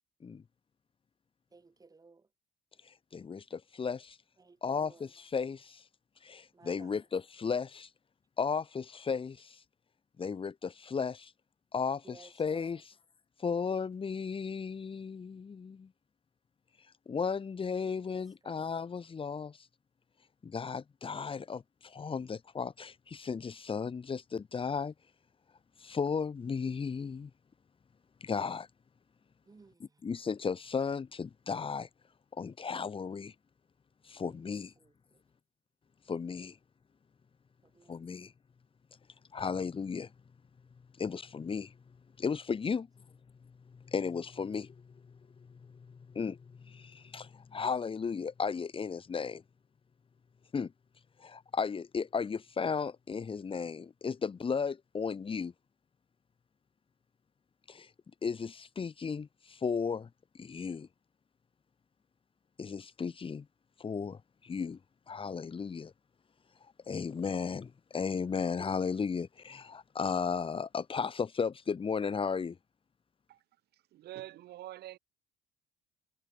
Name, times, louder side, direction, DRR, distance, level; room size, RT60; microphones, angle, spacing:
voice 1, 1.5-2.3 4.4-5.0 6.5-6.9 12.0-12.8 18.1-18.7 29.5-29.8 37.7-38.0, right 4 dB, 20° right, 6.9 m, -57 dB
voice 2, 2.8-4.2 4.6-5.9 6.2-7.9 8.4-9.6 10.2-11.3 11.7-12.9 13.4-15.9 17.1-19.7 20.4-24.9 25.8-27.3 28.2-28.7 29.8-31.9 32.3-33.3 34.0-34.7 36.1-36.6 37.9-38.3 39.3-40.1 40.9-43.1 43.4-49.4 50.5-50.7 51.2-55.5 57.7-57.9 58.2-60.1 60.3-60.9 62.6-63.5 63.8-64.8 65.1-65.9 66.6-72.6, left 5 dB, 30° left, 4.8 m, -35 dB
voice 3, 73.9-75.0, right 14 dB, 75° right, 8.0 m, -45 dB
cardioid pair, 110°, 17 cm